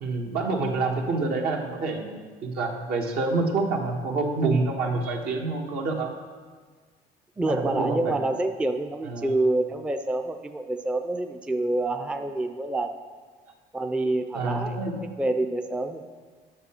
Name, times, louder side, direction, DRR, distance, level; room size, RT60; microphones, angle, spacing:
voice 1, 0.0-6.1 7.5-8.2 9.1-9.3 14.3-15.2, right 3 dB, 70° right, 1 dB, 1.3 m, -27 dB
voice 2, 7.4-13.0 13.7-14.8 15.2-16.0, right 2 dB, 5° right, 6 dB, 0.4 m, -27 dB
9.3 x 6.5 x 4.3 m, 1.5 s
cardioid pair, 110°, 17 cm